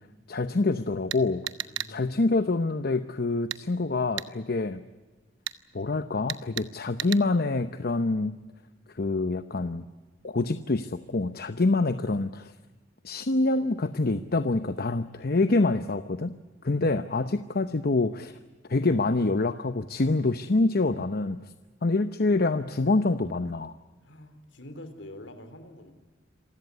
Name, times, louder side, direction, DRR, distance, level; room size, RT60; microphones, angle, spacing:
voice 1, 0.3-1.4 1.9-4.8 5.7-8.4 9.0-9.8 10.2-12.5 13.0-16.3 16.6-18.4 18.7-21.4 21.8-23.7, left 2 dB, 55° left, 11 dB, 0.8 m, -26 dB
sound 1, 1.1-1.9 3.5-3.6 4.2-4.3 5.5-5.6 6.3-6.7 7.0-7.2, right 12 dB, 70° right, 0.9 m, -33 dB
voice 2, 1.6-2.2 16.6-17.3 24.0-25.9, left 1 dB, 70° left, 9 dB, 3.6 m, -46 dB
27.0 x 16.0 x 9.6 m, 1.3 s
head